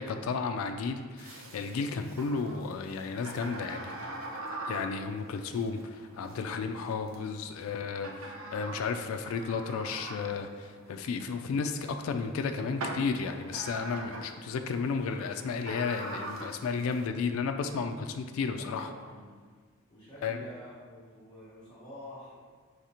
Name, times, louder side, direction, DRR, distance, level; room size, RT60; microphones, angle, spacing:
voice 1, 0.0-3.9 4.7-18.9 20.2-20.4, left 5 dB, 80° left, 7 dB, 0.3 m, -33 dB
sound 1, 1.2-17.1, right 2 dB, 80° right, 0.6 m, -43 dB
voice 2, 18.5-19.3 19.9-22.4, left 1 dB, 20° left, -11 dB, 0.9 m, -48 dB
4.8 x 3.3 x 2.8 m, 1.5 s
head